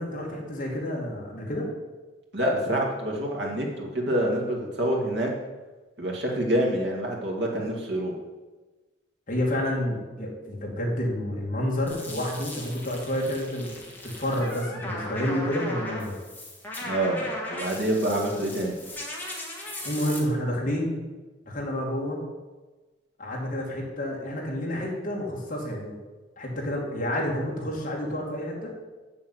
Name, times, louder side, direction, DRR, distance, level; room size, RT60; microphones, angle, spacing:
voice 1, 0.0-1.7 9.3-13.7 14.0-16.2 19.8-20.9 21.5-22.2 23.2-25.9 26.4-28.7, left 1 dB, 45° left, -2 dB, 2.4 m, -29 dB
voice 2, 2.3-5.3 6.0-8.2 16.8-18.8, right 1 dB, 65° right, -1 dB, 2.2 m, -27 dB
sound 1, 11.9-20.2, left 1 dB, 10° left, 2.0 m, -37 dB
7.3 x 7.1 x 7.9 m, 1.2 s
head